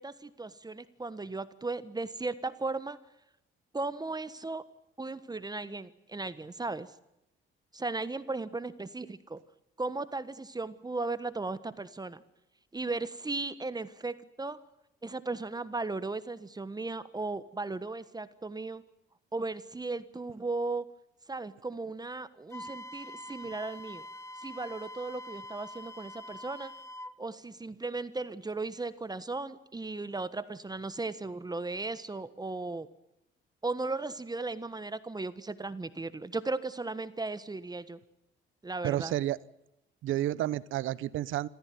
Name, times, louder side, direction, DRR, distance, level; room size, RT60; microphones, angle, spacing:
voice 1, 0.0-3.0 3.7-4.6 5.0-6.9 7.7-9.4 9.8-12.2 12.7-14.6 15.0-18.8 19.3-20.8 21.3-24.1 24.4-26.7 27.2-32.9 33.6-38.0 38.6-39.1, right 3 dB, 20° right, 14 dB, 1.4 m, -36 dB
Wind instrument woodwind instrument, 22.5-27.2, left 1 dB, 15° left, 1.5 m, -45 dB
voice 2, 38.8-39.4 40.0-41.5, right 13 dB, 85° right, 19 dB, 1.0 m, -30 dB
27.0 x 15.5 x 9.4 m, 0.87 s
cardioid pair, 90°, 20 cm